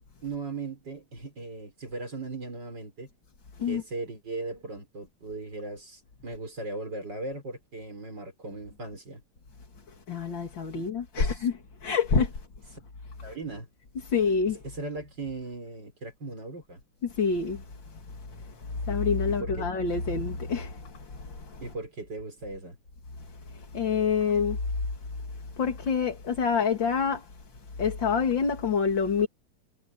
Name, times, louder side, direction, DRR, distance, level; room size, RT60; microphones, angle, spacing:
voice 1, 0.2-3.1 3.6-9.2 10.7-10.9 11.2-11.5 13.2-13.7 14.6-16.8 19.3-19.7 21.6-22.8, right 3 dB, 60° right, 6.0 m, -38 dB
voice 2, 10.1-11.5 11.8-12.3 14.1-14.6 17.0-17.6 17.9-18.0 18.3-21.6 23.5-24.6 25.6-27.3 27.8-29.3, left 5 dB, 70° left, 3.2 m, -27 dB
omnidirectional pair, 2.1 m